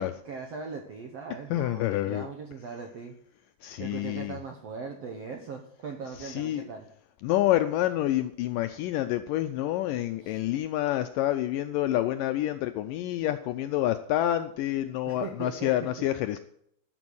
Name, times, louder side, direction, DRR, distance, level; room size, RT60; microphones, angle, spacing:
voice 1, 0.0-3.1 3.8-6.9 10.2-10.4 15.1-15.7, right 5 dB, 75° right, 4 dB, 1.4 m, -40 dB
voice 2, 1.5-2.3 3.6-4.4 6.2-6.6 7.2-16.4, left 13 dB, 85° left, 9 dB, 1.9 m, -28 dB
13.5 x 7.0 x 6.2 m, 0.71 s
omnidirectional pair, 4.4 m